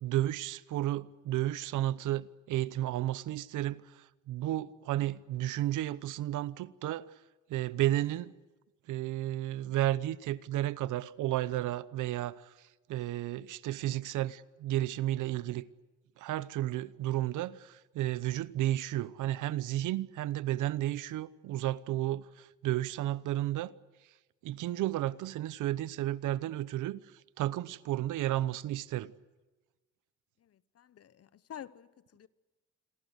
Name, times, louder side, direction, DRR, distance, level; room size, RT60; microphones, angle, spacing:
voice 1, 0.0-7.1 7.5-8.3 8.9-15.6 16.2-23.7 24.4-27.0 27.4-29.1, right 14 dB, 85° right, 1.0 m, -32 dB
voice 2, 30.4-32.3, left 10 dB, 50° left, 1.1 m, -49 dB
28.0 x 22.5 x 8.1 m
cardioid pair, 90°, 30 cm